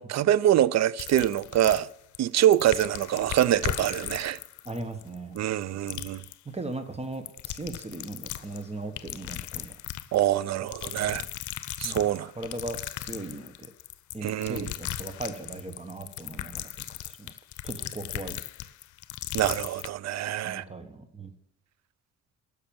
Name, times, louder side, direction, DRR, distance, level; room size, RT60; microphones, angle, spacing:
voice 1, 0.0-1.9 2.2-4.4 5.3-6.2 10.1-11.2 11.8-12.3 14.2-14.7 19.3-20.6, right 12 dB, 60° right, 0.5 m, -25 dB
sound 1, 1.0-2.2 2.4-5.6 5.9-6.3 7.1-8.6 9.0-10.3 10.7-19.9, left 13 dB, 75° left, 0.7 m, -37 dB
voice 2, 4.6-5.4 5.9-6.0 6.5-9.8 10.9-11.0 11.8-12.1 12.4-13.7 14.1-17.3 17.6-18.4 20.4-21.3, right 2 dB, 20° right, 1.4 m, -38 dB
10.0 x 6.8 x 7.2 m
cardioid pair, 90°, 30 cm